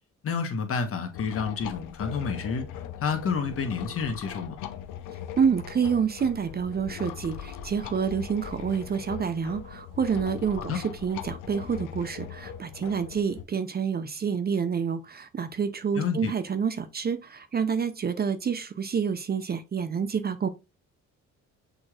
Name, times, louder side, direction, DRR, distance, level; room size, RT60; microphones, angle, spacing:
voice 1, 0.2-2.7 3.0-4.6 10.6-10.8 15.9-16.3, left 5 dB, 50° left, 1.1 m, -29 dB
sound 1, 1.1-13.4, left 9 dB, 85° left, 0.6 m, -40 dB
voice 2, 5.4-20.5, right 6 dB, 30° right, 0.5 m, -28 dB
6.4 x 3.0 x 2.4 m
cardioid pair, 90°, 30 cm